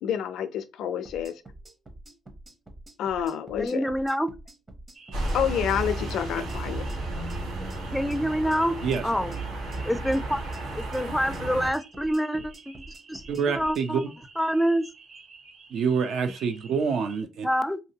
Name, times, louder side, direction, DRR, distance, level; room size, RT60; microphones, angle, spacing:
voice 1, 0.0-1.4 3.0-3.9 5.3-6.9, left 9 dB, 80° left, 0.4 m, -28 dB
sound 1, 1.0-13.9, right 1 dB, 30° right, 0.9 m, -47 dB
voice 2, 3.6-4.3 7.6-7.7 7.9-9.3 9.8-10.4 10.7-12.7 13.1-13.2 13.5-14.0 14.4-14.8 17.4-17.8, equal, 5° left, 0.4 m, -26 dB
sound 2, 4.9-17.2, right 4 dB, 50° right, 1.1 m, -50 dB
sound 3, 5.1-11.7, right 1 dB, 90° right, 1.2 m, -33 dB
voice 3, 13.3-14.0 15.7-17.5, right 6 dB, 75° right, 0.6 m, -26 dB
3.1 x 2.7 x 2.8 m
cardioid pair, 90°, 0 cm